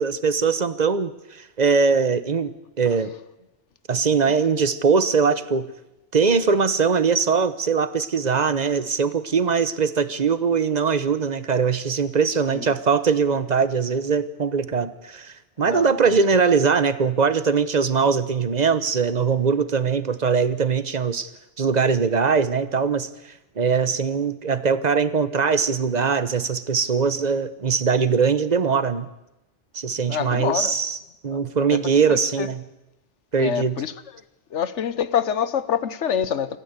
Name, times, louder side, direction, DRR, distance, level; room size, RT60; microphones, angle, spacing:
voice 1, 0.0-3.1 3.9-5.7 6.1-21.3 21.6-23.1 23.6-29.1 29.7-31.0 31.2-32.6 33.3-33.8, right 5 dB, 40° right, 14 dB, 1.0 m, -21 dB
voice 2, 15.6-16.2 30.1-30.8 31.3-31.4 31.7-31.8 32.1-32.5 33.4-33.9 34.5-36.6, left 8 dB, 75° left, 15 dB, 1.3 m, -26 dB
26.5 x 14.0 x 8.1 m, 0.94 s
omnidirectional pair, 1.2 m